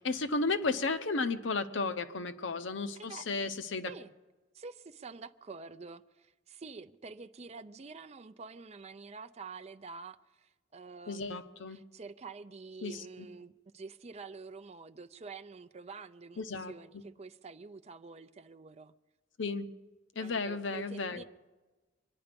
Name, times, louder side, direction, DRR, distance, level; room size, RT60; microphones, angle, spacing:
voice 1, 0.0-3.9 11.1-11.8 12.8-13.3 16.4-16.7 19.4-19.7 20.2-21.2, left 3 dB, 70° left, 0.8 m, -34 dB
voice 2, 3.0-3.3 3.9-4.1 4.5-11.3 11.7-18.9 20.2-21.2, right 4 dB, 35° right, 0.5 m, -47 dB
24.0 x 10.0 x 5.2 m
head